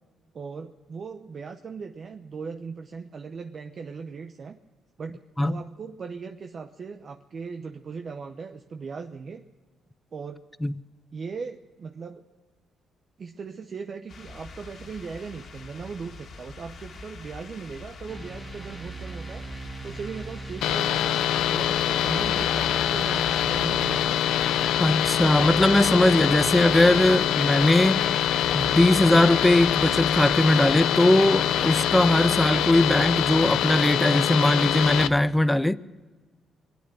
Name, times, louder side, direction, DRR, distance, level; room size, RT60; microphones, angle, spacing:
voice 1, 0.3-4.6 5.0-9.4 10.1-10.4 11.1-12.2 13.2-19.5 19.8-24.2, right 5 dB, 45° right, 0.8 m, -38 dB
sound 1, 14.1-30.9, left 3 dB, 60° left, 2.2 m, -45 dB
sound 2, 18.1-35.2, right 3 dB, 10° right, 1.7 m, -40 dB
sound 3, 20.6-35.1, left 11 dB, 85° left, 0.5 m, -24 dB
voice 2, 24.8-28.0 28.5-35.8, left 1 dB, 10° left, 0.5 m, -20 dB
23.5 x 9.1 x 6.3 m
cardioid pair, 90°, 0 cm